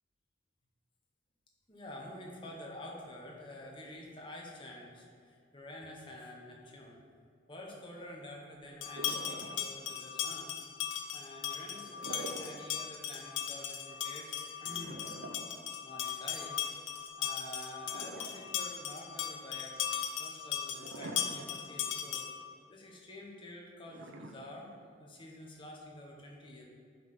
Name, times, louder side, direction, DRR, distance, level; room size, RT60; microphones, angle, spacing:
voice 1, 1.7-7.0 7.5-10.6 11.1-15.0 15.8-16.6 17.2-19.8 20.1-22.3 22.7-26.7, left 1 dB, 25° left, -1 dB, 1.2 m, -48 dB
sound 1, 8.8-22.5, left 9 dB, 80° left, 0.8 m, -38 dB
sound 2, 8.9-9.9 11.8-12.6 13.0-13.1 14.8-16.3 17.8-18.7 19.2-19.3 20.8-21.7 22.1-22.2 23.9-24.9, right 2 dB, 75° right, 0.7 m, -46 dB
5.8 x 5.7 x 6.1 m, 2.3 s
head